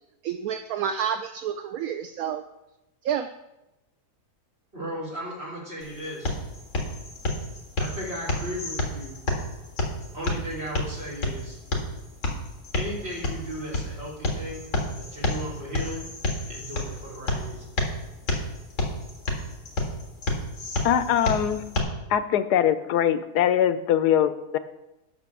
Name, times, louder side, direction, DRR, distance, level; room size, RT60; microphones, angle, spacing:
voice 1, 0.2-2.4 3.0-3.3, right 8 dB, 70° right, 8 dB, 1.0 m, -29 dB
voice 2, 4.7-6.4 7.8-9.2 10.1-11.6 12.8-14.7 15.0-16.2 16.5-17.7, equal, 40° right, -5 dB, 3.7 m, -36 dB
sound 1, 5.8-21.8, left 2 dB, 50° left, 2.0 m, -30 dB
voice 3, 20.8-21.6 22.1-24.6, left 10 dB, 80° left, 12 dB, 1.2 m, -22 dB
9.4 x 5.9 x 7.0 m, 0.94 s
omnidirectional pair, 1.7 m